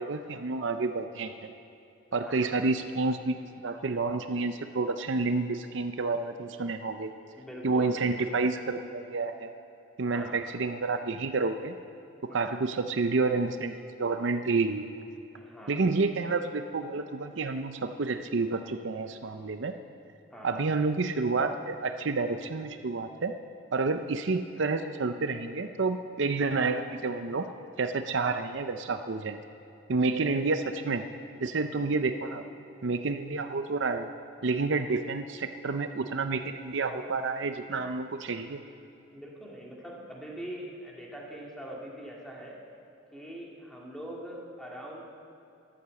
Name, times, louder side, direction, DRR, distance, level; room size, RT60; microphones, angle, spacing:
voice 1, 0.0-1.5 2.1-7.1 7.6-9.5 10.0-11.8 12.3-13.7 14.0-14.9 15.7-19.7 20.4-23.3 23.7-27.5 27.8-29.4 29.9-31.1 31.4-32.4 32.8-34.1 34.4-38.6, right 3 dB, 60° right, 8 dB, 0.6 m, -29 dB
voice 2, 2.1-2.5 7.4-8.4 10.1-10.5 12.3-12.6 15.4-15.8 20.3-20.6 31.7-32.0 39.1-42.6 43.1-45.0, right 1 dB, 5° left, -3 dB, 2.2 m, -43 dB
13.0 x 11.5 x 7.7 m, 2.8 s
head